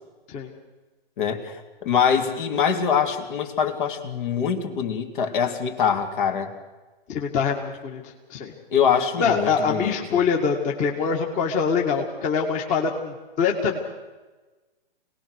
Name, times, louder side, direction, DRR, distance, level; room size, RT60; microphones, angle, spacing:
voice 1, 1.2-1.6 1.8-6.5 8.7-10.2, left 7 dB, 55° left, 4 dB, 3.2 m, -24 dB
voice 2, 7.1-8.0 8.3-8.5 9.2-13.8, left 5 dB, 25° left, 1 dB, 2.1 m, -24 dB
26.5 x 19.0 x 6.6 m, 1.2 s
hypercardioid pair, 135°, 30 cm